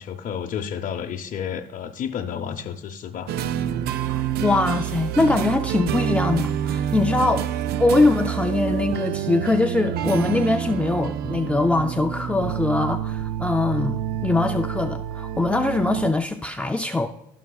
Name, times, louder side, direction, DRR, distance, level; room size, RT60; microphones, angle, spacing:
voice 1, 0.0-3.3, left 8 dB, 55° left, 0 dB, 0.7 m, -31 dB
sound 1, 3.3-16.1, right 10 dB, 70° right, 0.4 m, -27 dB
voice 2, 4.1-7.5 7.8-17.1, left 2 dB, 5° left, 4 dB, 0.4 m, -22 dB
15.5 x 5.9 x 2.3 m, 0.79 s
cardioid pair, 110°, 17 cm